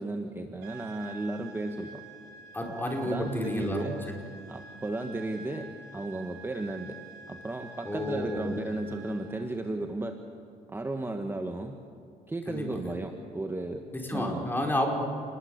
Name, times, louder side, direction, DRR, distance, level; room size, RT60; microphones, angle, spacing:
voice 1, 0.0-2.0 3.0-4.0 4.5-7.0 7.3-10.2 10.7-11.8 12.3-14.5, right 2 dB, 15° right, 5 dB, 1.4 m, -34 dB
sound 1, 0.6-9.5, right 5 dB, 75° right, 3.7 m, -48 dB
voice 2, 2.5-3.9 7.9-8.6 12.5-12.7 13.9-14.9, left 1 dB, 10° left, 1 dB, 5.2 m, -31 dB
28.5 x 20.5 x 8.1 m, 2.4 s
cardioid pair, 110°, 17 cm